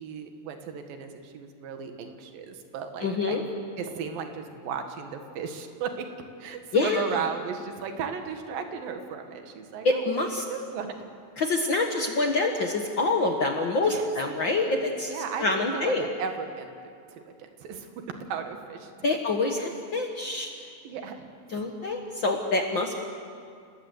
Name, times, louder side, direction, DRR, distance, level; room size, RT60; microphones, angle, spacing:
voice 1, 0.0-3.4 3.8-6.1 6.4-11.0 13.8-16.7 17.2-18.9 20.6-21.3 22.7-22.9, right 6 dB, 75° right, 5 dB, 3.4 m, -36 dB
voice 2, 3.0-3.4 6.7-7.0 9.8-10.4 11.4-16.1 19.0-20.5 21.5-22.9, left 3 dB, 60° left, 3 dB, 1.2 m, -26 dB
28.5 x 19.5 x 8.0 m, 2.3 s
omnidirectional pair, 4.2 m